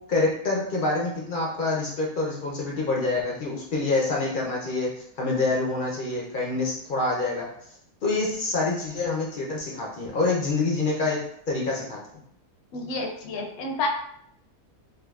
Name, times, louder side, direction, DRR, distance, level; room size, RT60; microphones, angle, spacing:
voice 1, 0.1-7.5 8.0-11.2 11.5-12.0, left 3 dB, 60° left, -3 dB, 0.5 m, -26 dB
voice 2, 12.7-13.9, left 2 dB, 90° left, 3 dB, 1.1 m, -30 dB
3.6 x 2.4 x 2.3 m, 0.70 s
omnidirectional pair, 1.5 m